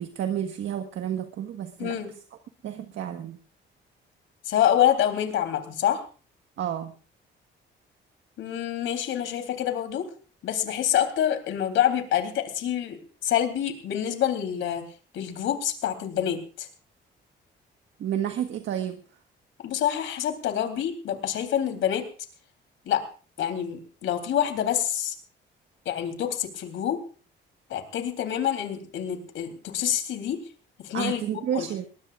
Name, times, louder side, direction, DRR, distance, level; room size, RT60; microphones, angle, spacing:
voice 1, 0.0-2.0 2.6-3.4 6.6-6.9 18.0-19.0 30.9-31.9, right 10 dB, 75° right, 5 dB, 1.5 m, -30 dB
voice 2, 1.8-2.1 4.5-6.0 8.4-10.1 10.4-14.8 15.1-16.7 19.6-22.0 22.9-23.0 23.4-25.1 25.9-27.0 27.7-30.4 30.8-31.7, left 10 dB, 80° left, 7 dB, 3.5 m, -27 dB
22.0 x 20.0 x 2.5 m, 0.38 s
cardioid pair, 90°, 20 cm